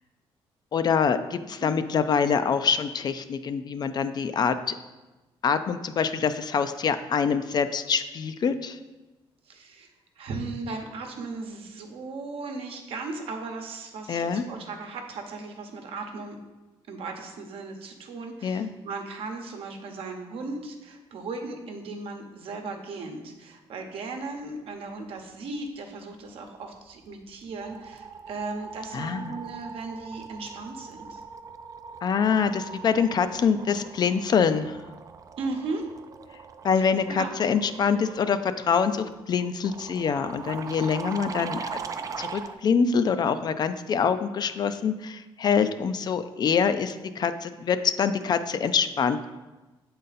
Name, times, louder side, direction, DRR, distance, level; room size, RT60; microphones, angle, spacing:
voice 1, 0.7-4.8 5.4-8.8 14.1-14.4 18.4-18.7 28.9-29.3 32.0-34.8 36.6-41.6 42.2-49.3, left 6 dB, 45° left, 10 dB, 0.4 m, -25 dB
voice 2, 9.4-9.9 10.2-16.4 16.9-31.2 35.4-35.9 36.8-37.4, right 3 dB, 75° right, 4 dB, 0.9 m, -37 dB
sound 1, 26.7-27.1 27.3-42.6, right 5 dB, 35° right, 0.3 m, -41 dB
7.5 x 3.9 x 4.0 m, 1.1 s
cardioid pair, 120°, 10 cm